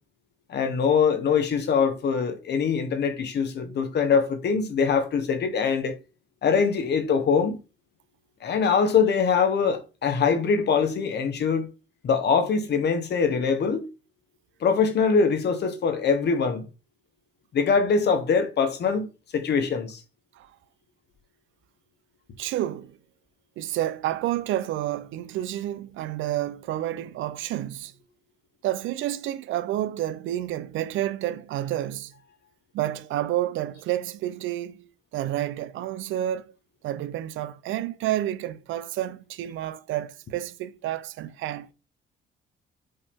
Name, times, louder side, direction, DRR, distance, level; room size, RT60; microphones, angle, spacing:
voice 1, 0.5-5.9 6.4-7.6 8.4-11.7 12.0-13.9 14.6-16.6 17.5-19.1 19.3-20.0, left 5 dB, 60° left, 1.0 m, -23 dB
voice 2, 22.4-23.0 23.6-27.9 28.6-32.1 32.7-36.5 36.8-41.7, right 13 dB, 80° right, 0.5 m, -30 dB
5.4 x 2.7 x 3.5 m
cardioid pair, 90°, 20 cm